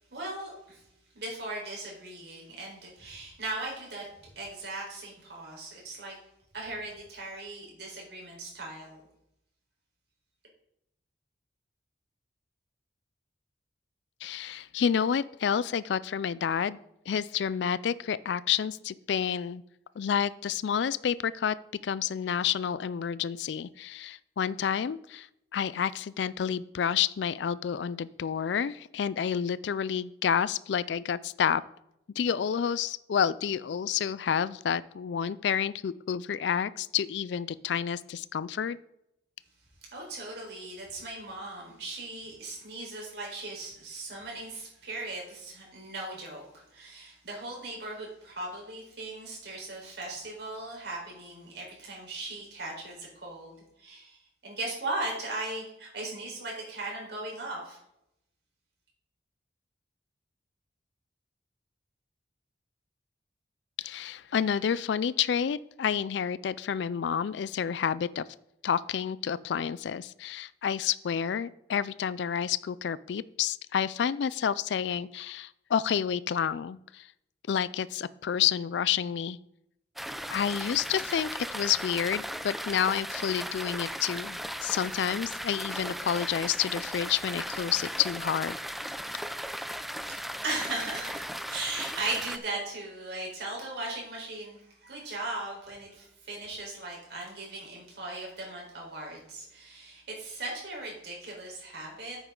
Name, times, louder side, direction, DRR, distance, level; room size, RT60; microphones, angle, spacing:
voice 1, 0.1-0.8 1.1-4.1 4.3-6.2 6.5-9.0 39.9-54.2 54.4-57.8 90.1-102.2, right 2 dB, 65° right, -2 dB, 4.2 m, -38 dB
voice 2, 14.2-16.8 17.1-19.6 20.0-21.6 21.8-25.3 25.5-31.6 32.1-38.8 63.8-68.2 68.6-77.1 77.5-79.4 80.3-88.6, left 8 dB, 70° left, 18 dB, 0.4 m, -29 dB
sound 1, 80.0-92.4, equal, ahead, 0.3 m, -37 dB
9.5 x 8.1 x 3.8 m, 0.80 s
head